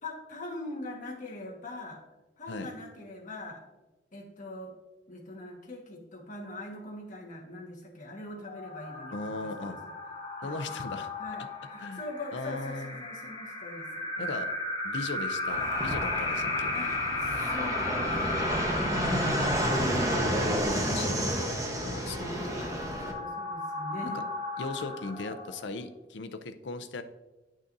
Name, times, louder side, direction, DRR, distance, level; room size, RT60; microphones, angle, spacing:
voice 1, 0.0-2.0 2.4-3.6 4.1-4.7 5.1-9.9 10.2-10.6 11.2-14.4 16.7-17.0 17.2-20.0 20.9-21.5 22.2-24.2, left 1 dB, 45° left, -1 dB, 1.5 m, -42 dB
sound 1, 8.5-25.8, left 2 dB, 25° left, 1.2 m, -35 dB
voice 2, 9.1-9.8 10.4-11.1 11.8-12.0 12.3-13.0 14.2-14.5 14.8-16.7 19.0-19.5 20.7-21.3 21.8-22.4 24.1-24.2 24.6-27.0, left 3 dB, 75° left, 9 dB, 0.6 m, -38 dB
Fixed-wing aircraft airplane, 15.5-23.1, equal, 20° right, 1.1 m, -30 dB
10.0 x 6.2 x 2.7 m, 1.1 s
head